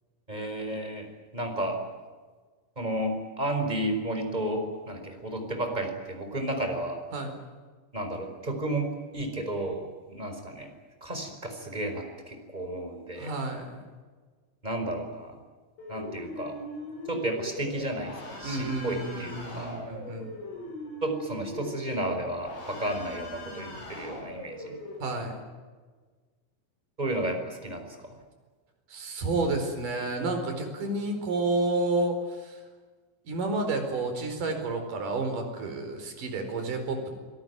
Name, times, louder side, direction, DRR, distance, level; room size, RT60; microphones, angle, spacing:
voice 1, 0.3-1.8 2.8-7.0 7.9-10.7 11.0-13.4 14.6-15.3 15.9-16.6 17.1-19.8 21.0-24.8 27.0-28.2, right 1 dB, 10° right, 5 dB, 4.2 m, -32 dB
voice 2, 13.2-13.8 18.4-20.3 25.0-25.4 28.9-32.6 33.3-37.1, right 2 dB, 40° right, 5 dB, 5.7 m, -30 dB
sound 1, 15.8-25.0, left 1 dB, 70° left, 9.6 m, -41 dB
30.0 x 18.5 x 9.5 m, 1.4 s
omnidirectional pair, 5.9 m